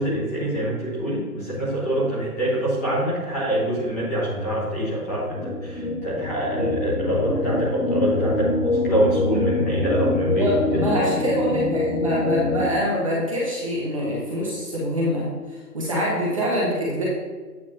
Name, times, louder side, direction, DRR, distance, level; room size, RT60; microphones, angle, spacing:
voice 1, 0.0-10.5, right 1 dB, 10° left, -8 dB, 1.1 m, -25 dB
sound 1, 5.4-12.7, left 2 dB, 50° left, 1.3 m, -25 dB
voice 2, 10.3-15.2 15.7-17.0, equal, 20° right, -5 dB, 0.9 m, -24 dB
8.6 x 6.1 x 2.8 m, 1.4 s
hypercardioid pair, 160°, 48 cm